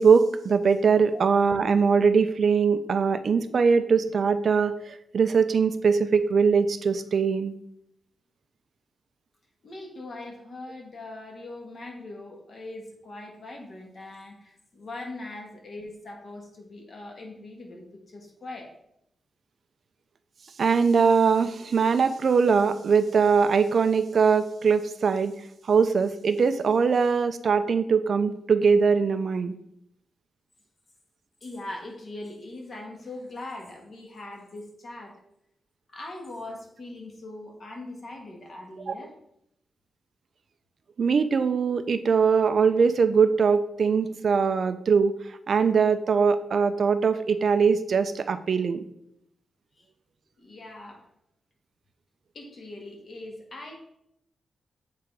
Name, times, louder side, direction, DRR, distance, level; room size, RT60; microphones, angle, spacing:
voice 1, 0.0-7.5 20.6-25.3 25.6-29.5 38.9-39.0 41.0-48.8, right 5 dB, 50° right, 11 dB, 0.3 m, -22 dB
voice 2, 9.6-18.7 31.4-35.2 35.9-39.1 49.8-49.9 50.4-51.0 52.3-53.8, left 2 dB, 40° left, 1 dB, 1.3 m, -41 dB
7.7 x 3.7 x 4.5 m, 0.78 s
wide cardioid pair, 160°, 0 cm